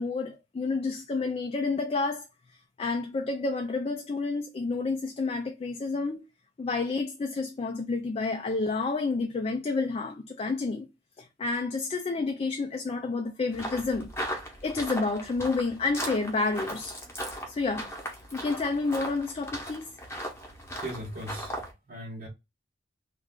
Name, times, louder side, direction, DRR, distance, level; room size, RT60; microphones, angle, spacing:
voice 1, 0.0-2.3 2.8-6.2 6.6-10.9 11.2-14.1 14.6-17.0 17.5-17.9 18.3-19.9, left 3 dB, 30° left, 0.3 m, -30 dB
sound 1, 13.5-21.7, equal, 15° left, 0.9 m, -38 dB
voice 2, 20.7-21.6 21.9-22.3, right 1 dB, 45° right, 0.8 m, -38 dB
3.1 x 2.4 x 3.6 m
head